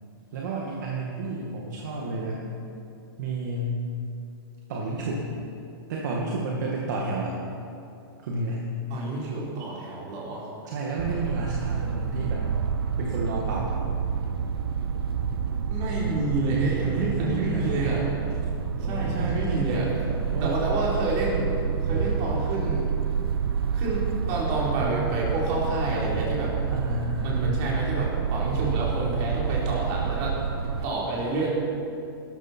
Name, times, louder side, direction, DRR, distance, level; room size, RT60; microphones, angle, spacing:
voice 1, 0.3-2.5 3.2-3.8 4.7-5.3 5.9-7.3 8.2-8.6 10.7-12.5 13.0-13.7 16.9-17.8 18.8-20.6 26.7-27.4, right 2 dB, 50° right, -3 dB, 2.1 m, -31 dB
voice 2, 8.9-10.5 15.7-18.1 18.8-19.9 20.4-21.5 21.8-22.9 23.7-26.5 27.2-30.4 30.8-31.5, right 2 dB, 30° right, -5 dB, 4.0 m, -28 dB
sound 1, 11.0-30.9, right 6 dB, 75° right, 1.2 m, -28 dB
20.0 x 13.0 x 4.5 m, 2.6 s
hypercardioid pair, 170°, 13 cm